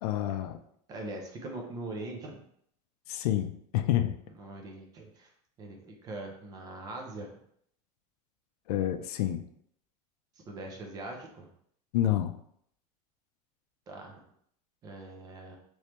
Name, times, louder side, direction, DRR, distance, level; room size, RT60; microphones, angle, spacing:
voice 1, 0.0-0.6 3.1-4.2 8.7-9.4 11.9-12.3, left 12 dB, 75° left, 9 dB, 0.4 m, -28 dB
voice 2, 0.9-2.4 4.4-5.3 5.6-7.4 10.5-11.5 13.9-14.2 14.8-15.6, right 2 dB, 20° right, 1 dB, 0.4 m, -41 dB
3.2 x 3.1 x 2.9 m, 0.67 s
supercardioid pair, 170°, 20 cm